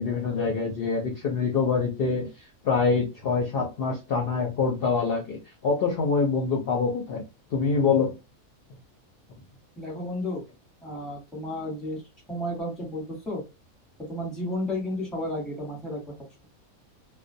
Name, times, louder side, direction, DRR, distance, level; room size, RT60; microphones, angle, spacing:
voice 1, 0.0-2.3 2.6-7.2 7.5-8.1, left 5 dB, 60° left, 1 dB, 0.6 m, -25 dB
voice 2, 9.8-10.4 10.8-12.0 12.3-13.4 14.0-16.0, left 1 dB, ahead, -2 dB, 0.8 m, -32 dB
2.3 x 2.1 x 2.6 m, 0.26 s
omnidirectional pair, 1.4 m